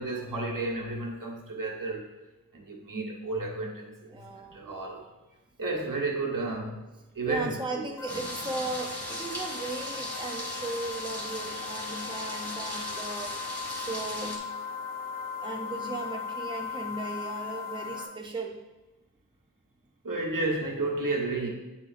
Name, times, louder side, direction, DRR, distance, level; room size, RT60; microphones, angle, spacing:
voice 1, 0.0-2.0 2.5-4.1 4.5-5.0 5.6-6.8 7.1-7.9 20.0-21.5, right 2 dB, 80° right, -1 dB, 1.4 m, -32 dB
voice 2, 4.1-4.6 7.2-14.5 15.4-18.6, right 3 dB, 15° right, 1 dB, 0.6 m, -37 dB
sound 1, 8.0-18.1, left 6 dB, 80° left, 0.9 m, -38 dB
sound 2, 8.1-14.4, equal, 5° left, 2.4 m, -38 dB
8.3 x 7.4 x 2.6 m, 1.1 s
wide cardioid pair, 60°, 32 cm